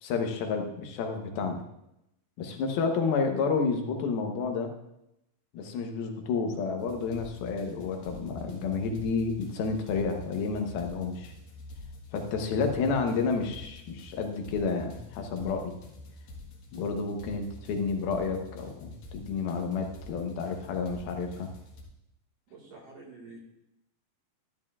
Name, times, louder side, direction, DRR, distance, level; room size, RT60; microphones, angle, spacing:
voice 1, 0.0-1.6 2.4-4.7 5.5-11.3 12.1-15.8 16.7-21.5, left 4 dB, 90° left, 4 dB, 2.9 m, -30 dB
sound 1, 6.8-21.8, left 1 dB, 55° left, 2.2 m, -47 dB
voice 2, 22.5-23.4, right 3 dB, 50° right, -3 dB, 2.5 m, -48 dB
12.5 x 11.0 x 2.4 m, 0.85 s
omnidirectional pair, 4.2 m